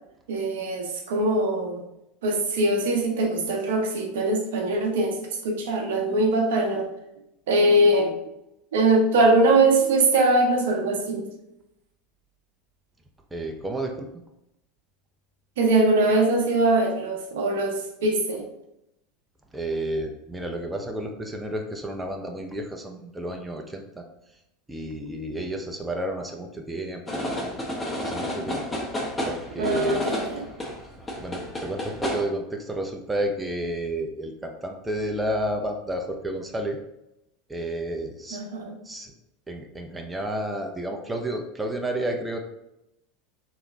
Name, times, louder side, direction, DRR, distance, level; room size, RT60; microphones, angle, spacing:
voice 1, 0.3-1.8 2.2-6.9 7.5-8.2 8.7-11.3 15.6-18.5 29.6-30.5 38.3-38.8, right 2 dB, 70° right, 2 dB, 0.7 m, -22 dB
voice 2, 13.3-14.1 19.5-24.0 24.7-27.2 28.0-28.8 29.2-30.1 31.2-36.8 37.5-38.4 38.8-39.1 39.5-42.4, right 1 dB, 10° right, 2 dB, 0.5 m, -31 dB
sound 1, 27.1-32.2, left 1 dB, 20° left, 1.0 m, -31 dB
3.2 x 3.0 x 3.7 m, 0.85 s
hypercardioid pair, 85°, 0 cm